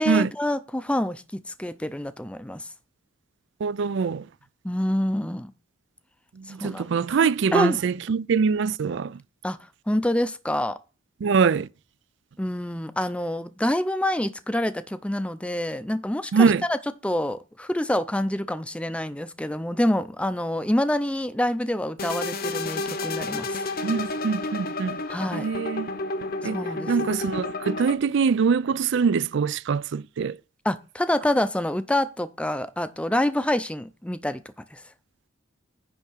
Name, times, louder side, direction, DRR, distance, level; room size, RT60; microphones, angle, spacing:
voice 1, 0.0-2.6 4.6-5.5 6.6-6.9 7.5-7.8 9.4-9.6 9.9-10.8 12.4-16.8 17.0-23.6 25.1-25.5 26.5-27.1 30.6-34.4 34.7-34.8, left 1 dB, 5° left, 0.5 m, -26 dB
voice 2, 3.6-4.2 6.4-9.2 11.2-11.7 16.3-16.6 23.8-25.0 25.3-25.9 26.4-26.6 26.9-30.4, right 5 dB, 60° right, 0.4 m, -23 dB
sound 1, 22.0-28.0, left 2 dB, 45° left, 0.8 m, -31 dB
10.0 x 3.6 x 7.1 m
head